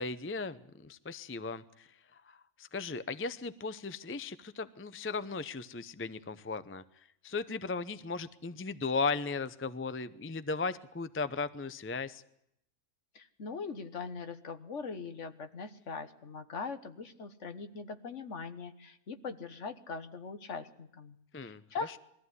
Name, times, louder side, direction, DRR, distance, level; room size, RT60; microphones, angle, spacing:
voice 1, 0.0-6.8 7.2-12.2 21.3-21.6, left 4 dB, 20° left, 14 dB, 0.3 m, -36 dB
voice 2, 13.1-21.2 21.4-22.0, left 4 dB, 50° left, 10 dB, 1.6 m, -41 dB
22.0 x 14.5 x 9.6 m, 0.77 s
omnidirectional pair, 1.6 m